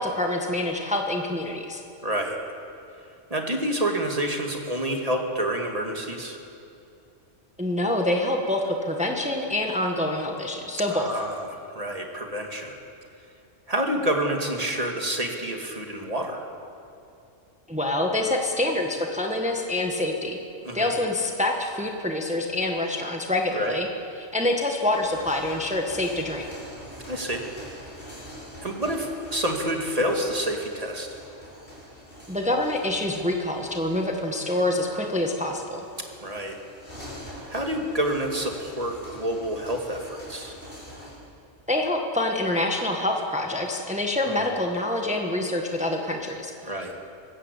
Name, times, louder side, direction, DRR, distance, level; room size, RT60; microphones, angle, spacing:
voice 1, 0.0-1.8 7.6-11.1 17.7-20.4 20.7-23.9 24.2-26.5 32.3-35.8 41.7-46.5 46.8-47.0, left 1 dB, 5° right, 2 dB, 1.5 m, -26 dB
voice 2, 2.0-2.4 3.3-6.4 10.9-12.8 13.7-16.4 20.6-20.9 23.5-23.8 27.1-27.5 28.6-31.1 36.2-36.6 37.5-40.5 44.3-44.4 46.6-46.9, right 1 dB, 30° right, 2 dB, 2.3 m, -28 dB
sound 1, 24.8-41.2, equal, 45° left, 6.1 m, -44 dB
24.0 x 13.5 x 8.4 m, 2.6 s
omnidirectional pair, 1.3 m